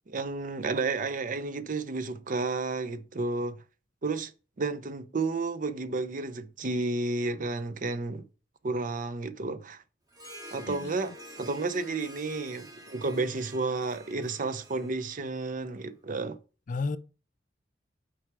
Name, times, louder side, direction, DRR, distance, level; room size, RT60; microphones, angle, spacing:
voice 1, 0.1-3.6 4.0-4.3 4.6-8.2 8.6-9.8 10.5-16.4, right 3 dB, 45° right, 0.6 m, -32 dB
Harp, 10.1-15.8, equal, 20° right, 1.8 m, -49 dB
voice 2, 10.7-11.2 16.7-17.0, left 4 dB, 45° left, 0.4 m, -33 dB
6.2 x 4.7 x 4.7 m
head